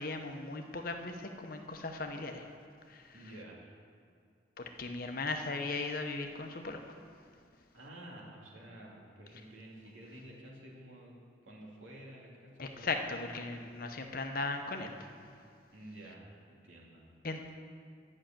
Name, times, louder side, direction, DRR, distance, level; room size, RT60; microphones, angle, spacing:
voice 1, 0.0-2.5 2.9-3.0 4.6-6.9 12.6-15.1 17.2-17.5, left 3 dB, 50° left, 5 dB, 0.8 m, -38 dB
voice 2, 3.1-3.7 7.7-12.9 15.7-17.1, right 1 dB, 85° right, -3 dB, 2.5 m, -51 dB
10.5 x 6.4 x 8.7 m, 2.2 s
head